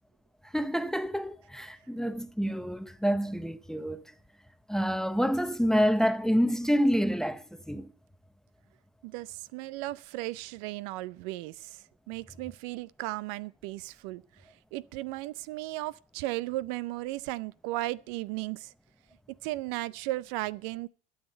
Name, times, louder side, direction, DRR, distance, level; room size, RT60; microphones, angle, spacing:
voice 1, 0.5-4.1 4.7-7.9, equal, ahead, 0.8 m, -28 dB
voice 2, 9.0-14.2 14.7-18.7 19.3-20.9, right 18 dB, 65° right, 0.6 m, -36 dB
12.5 x 7.3 x 7.8 m
hypercardioid pair, 85°, 30 cm